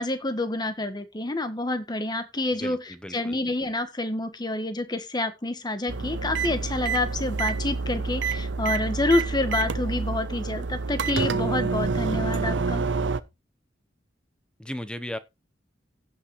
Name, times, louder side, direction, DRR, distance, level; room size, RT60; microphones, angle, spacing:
voice 1, 0.0-12.8, left 2 dB, 25° left, 1.4 m, -28 dB
voice 2, 2.5-3.4 14.6-15.2, left 1 dB, 5° left, 0.9 m, -36 dB
sound 1, 5.9-13.2, right 4 dB, 90° right, 0.8 m, -28 dB
16.0 x 6.1 x 3.1 m
head